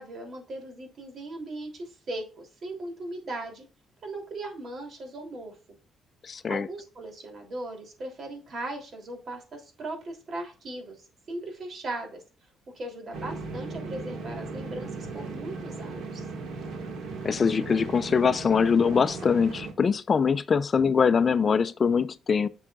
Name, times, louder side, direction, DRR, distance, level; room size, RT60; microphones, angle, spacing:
voice 1, 0.0-3.6 4.0-5.6 6.5-10.9 11.3-12.2 12.7-16.3, right 2 dB, 50° right, 3.1 m, -38 dB
voice 2, 6.2-6.7 17.2-22.5, left 6 dB, 40° left, 0.4 m, -23 dB
sound 1, 13.1-19.7, right 3 dB, 75° right, 1.9 m, -37 dB
9.8 x 6.3 x 2.4 m
cardioid pair, 90°, 0 cm